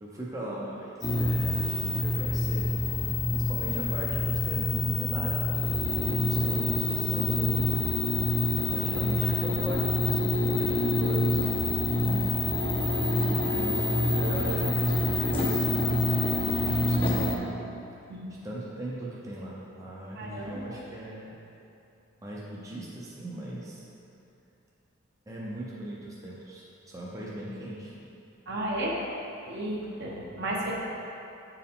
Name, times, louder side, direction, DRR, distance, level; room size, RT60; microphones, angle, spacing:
voice 1, 0.0-2.9 3.3-5.6 5.9-7.7 8.7-11.5 12.4-17.6 18.4-21.4 22.2-23.8 25.3-27.9 30.1-30.5, right 1 dB, 15° right, -6 dB, 0.6 m, -38 dB
sound 1, 1.0-17.4, left 2 dB, 25° left, 0.7 m, -26 dB
voice 2, 11.9-12.3 18.1-18.3 20.1-20.8 28.5-29.0 29.5-30.7, right 1 dB, 55° right, -3 dB, 1.0 m, -33 dB
7.5 x 4.6 x 3.7 m, 2.8 s
head